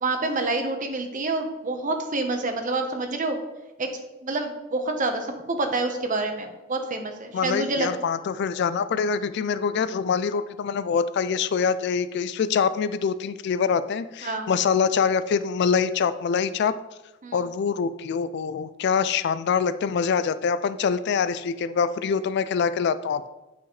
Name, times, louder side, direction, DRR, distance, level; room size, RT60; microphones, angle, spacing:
voice 1, 0.0-3.4 3.8-3.9 4.2-7.9 14.2-14.5 17.2-17.4, right 2 dB, 40° right, 6 dB, 0.9 m, -27 dB
voice 2, 7.3-16.7 17.3-23.2, left 6 dB, 60° left, 14 dB, 0.3 m, -24 dB
9.6 x 5.6 x 3.2 m, 1.0 s
head